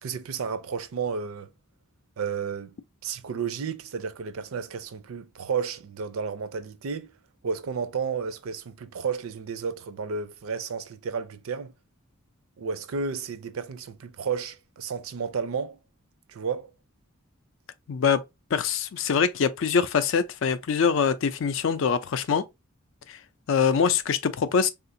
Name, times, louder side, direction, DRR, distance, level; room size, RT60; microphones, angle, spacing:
voice 1, 0.0-1.5 2.2-2.8 3.0-7.1 7.4-11.7 12.6-15.8 16.3-16.7, right 6 dB, 75° right, 0.4 m, -32 dB
voice 2, 17.9-18.2 18.5-22.4 23.1-23.2 23.5-24.7, left 6 dB, 60° left, 0.4 m, -24 dB
3.6 x 2.4 x 2.6 m
head